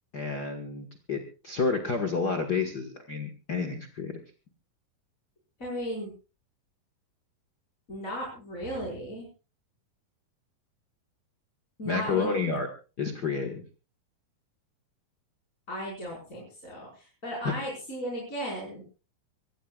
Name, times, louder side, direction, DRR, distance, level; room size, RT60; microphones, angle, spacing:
voice 1, 0.1-4.2 11.8-12.7 13.0-13.6 17.4-17.5, left 4 dB, 75° left, 3 dB, 0.9 m, -30 dB
voice 2, 5.6-6.1 7.9-9.3 11.8-12.4 15.7-18.8, equal, 20° left, -3 dB, 5.3 m, -36 dB
25.0 x 16.0 x 2.4 m, 0.33 s
omnidirectional pair, 4.4 m